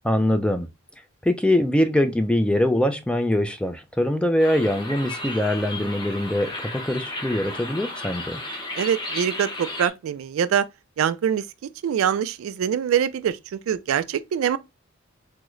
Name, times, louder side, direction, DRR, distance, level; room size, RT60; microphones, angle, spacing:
voice 1, 0.0-0.7 1.2-8.4, left 1 dB, 5° left, 0.3 m, -23 dB
sound 1, 4.4-9.9, left 1 dB, 20° left, 0.8 m, -34 dB
voice 2, 8.8-10.7 11.0-11.4 11.8-14.6, right 8 dB, 75° right, 0.3 m, -24 dB
3.5 x 2.0 x 3.1 m
head